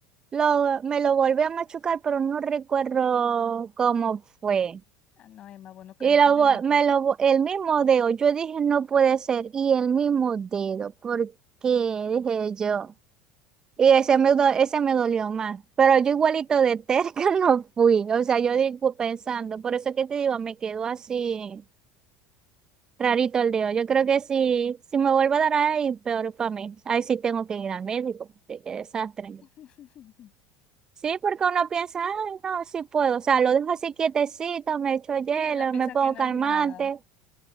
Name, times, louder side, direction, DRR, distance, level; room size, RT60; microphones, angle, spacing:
voice 1, 0.3-4.8 6.0-11.3 11.6-12.9 13.8-21.6 23.0-29.4 31.0-37.0, right 7 dB, 30° right, 0.7 m, -24 dB
voice 2, 5.2-6.8 14.1-14.2 29.4-30.3 35.3-36.9, left 11 dB, 45° left, 6.0 m, -44 dB
hypercardioid pair, 95°, 2 cm